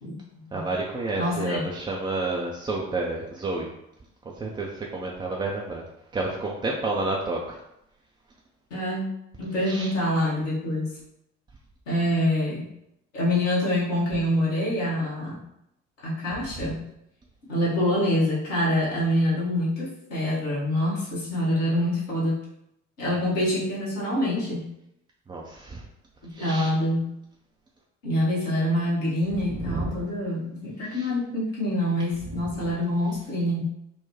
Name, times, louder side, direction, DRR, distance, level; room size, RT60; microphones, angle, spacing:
voice 1, 0.5-3.7 4.4-5.8 6.1-7.6 9.6-9.9 25.3-25.8 26.3-26.7 29.5-29.9 30.9-31.1, right 2 dB, 15° right, -3 dB, 0.3 m, -30 dB
voice 2, 1.1-1.6 8.7-9.1 9.4-10.9 11.9-12.7 13.1-15.4 16.0-16.8 17.5-22.4 23.0-24.6 26.2-27.1 28.0-33.6, left 1 dB, 75° left, -7 dB, 1.3 m, -25 dB
3.8 x 2.1 x 2.9 m, 0.80 s
figure-of-eight pair, 50°, 38 cm